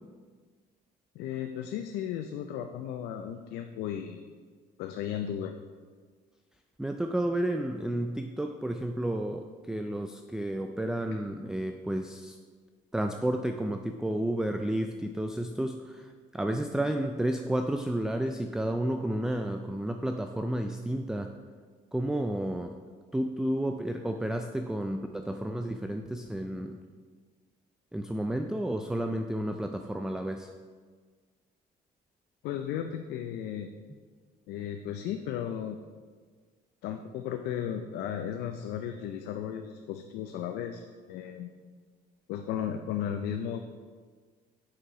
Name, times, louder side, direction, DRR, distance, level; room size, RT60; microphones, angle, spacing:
voice 1, 1.1-4.3 4.8-5.5 11.1-11.2 32.4-33.7 34.5-35.8 36.8-41.5 42.3-43.6, left 9 dB, 85° left, 6 dB, 0.5 m, -35 dB
voice 2, 6.8-12.4 12.9-21.3 21.9-22.7 23.1-26.8 27.9-30.5, right 1 dB, 5° right, 5 dB, 0.3 m, -31 dB
6.5 x 5.8 x 4.7 m, 1.5 s
cardioid pair, 110°, 17 cm